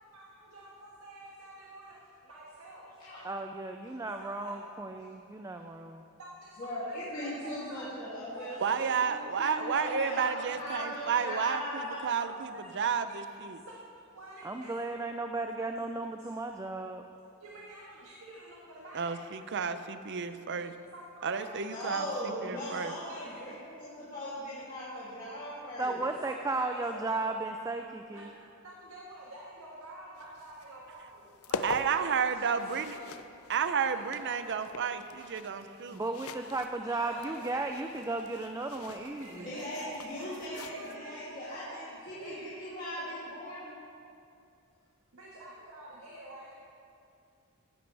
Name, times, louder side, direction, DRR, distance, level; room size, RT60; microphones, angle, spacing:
voice 1, 0.1-3.0 4.2-4.7 6.2-6.3 6.6-7.9 8.3-9.3 9.6-10.9 11.6-11.7 12.1-12.7 14.1-14.7 15.4-15.5 15.8-15.9 16.2-16.3 17.4-19.2 20.9-21.6 22.7-23.4 26.3-27.3 28.1-33.2 33.9-34.8 36.8-37.4 39.2-41.9 42.2-42.5 45.1-46.5, right 1 dB, 80° right, -4 dB, 1.6 m, -49 dB
voice 2, 3.2-6.0 14.4-17.0 25.8-28.3 35.9-39.5, right 2 dB, 15° right, 5 dB, 0.4 m, -35 dB
voice 3, 6.6-12.0 21.6-26.0 39.4-43.7, equal, 40° left, -12 dB, 2.8 m, -39 dB
voice 4, 8.6-13.6 18.9-20.8 21.2-22.9 31.6-33.0 33.5-36.0, right 6 dB, 55° right, 11 dB, 0.6 m, -31 dB
sound 1, 30.1-41.0, left 4 dB, 75° left, 0.5 m, -44 dB
16.5 x 10.5 x 3.4 m, 2.5 s
head